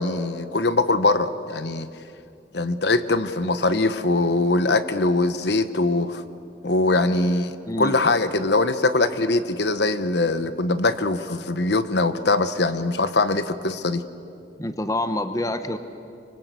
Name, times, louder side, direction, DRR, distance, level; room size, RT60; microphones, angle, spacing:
voice 1, 0.0-1.9 2.5-6.2 6.6-14.0, left 2 dB, 65° left, 11 dB, 1.0 m, -22 dB
voice 2, 7.7-8.0 14.6-15.8, left 1 dB, 20° left, 9 dB, 1.0 m, -26 dB
25.0 x 25.0 x 8.2 m, 2.6 s
head